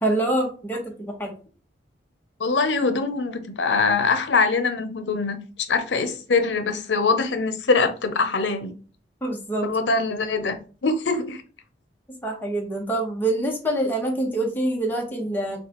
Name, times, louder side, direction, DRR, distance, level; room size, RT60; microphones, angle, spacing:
voice 1, 0.0-1.3 9.2-9.7 12.2-15.6, right 1 dB, 10° left, 1.1 m, -25 dB
voice 2, 2.4-8.7 9.6-11.4, left 4 dB, 90° left, 0.7 m, -23 dB
6.4 x 2.4 x 2.9 m
head